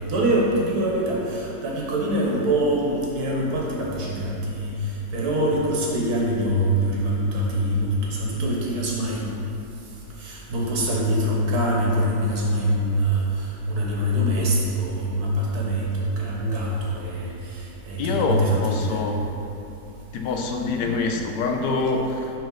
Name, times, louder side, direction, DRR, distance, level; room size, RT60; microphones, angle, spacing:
voice 1, 0.0-4.7 5.1-9.3 10.2-19.0, right 1 dB, 65° right, -3 dB, 1.5 m, -24 dB
voice 2, 18.0-19.3 20.1-22.3, left 3 dB, 85° left, 3 dB, 1.2 m, -25 dB
5.8 x 5.2 x 3.9 m, 3.0 s
omnidirectional pair, 1.8 m